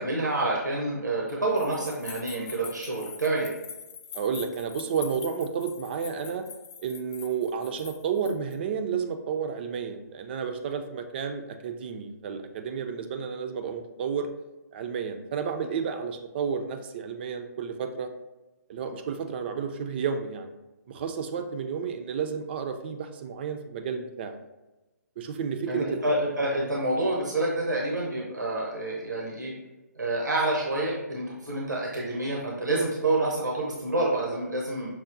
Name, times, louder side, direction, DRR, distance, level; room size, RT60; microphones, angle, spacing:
voice 1, 0.0-3.5 25.7-29.5 29.9-34.9, right 2 dB, 90° right, -3 dB, 0.8 m, -28 dB
sound 1, 1.6-8.5, left 7 dB, 45° left, 0.4 m, -44 dB
voice 2, 4.1-6.4 6.8-14.3 14.7-18.1 18.7-20.5 20.9-24.3 25.2-26.0 26.5-26.7, right 6 dB, 35° right, 5 dB, 0.4 m, -31 dB
5.9 x 2.1 x 2.5 m, 1.1 s
figure-of-eight pair, 135°, 10 cm